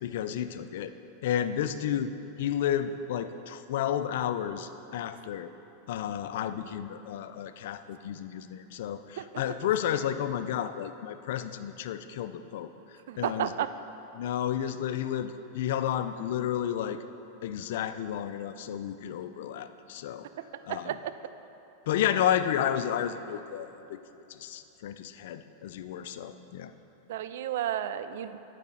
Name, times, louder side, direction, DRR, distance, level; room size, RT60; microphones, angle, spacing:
voice 1, 0.0-5.5 5.9-13.5 14.1-17.0 17.4-20.3 20.7-21.0 21.9-24.0 24.3-26.7, left 10 dB, 70° left, 11 dB, 0.4 m, -32 dB
voice 2, 13.1-13.7 20.4-21.0 27.1-28.3, right 11 dB, 70° right, 12 dB, 0.4 m, -32 dB
9.5 x 4.9 x 5.6 m, 2.9 s
hypercardioid pair, 110°, 0 cm